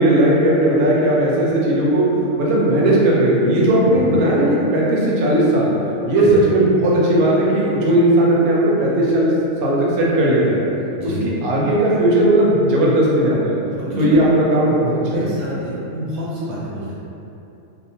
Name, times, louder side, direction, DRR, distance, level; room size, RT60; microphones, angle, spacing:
voice 1, 0.0-5.7 6.1-10.6 11.0-13.6 14.0-15.3, right 1 dB, 90° right, -5 dB, 1.1 m, -16 dB
voice 2, 11.0-11.3 13.7-14.2 15.1-17.0, equal, 65° right, -7 dB, 0.9 m, -28 dB
2.8 x 2.1 x 2.7 m, 2.8 s
omnidirectional pair, 1.5 m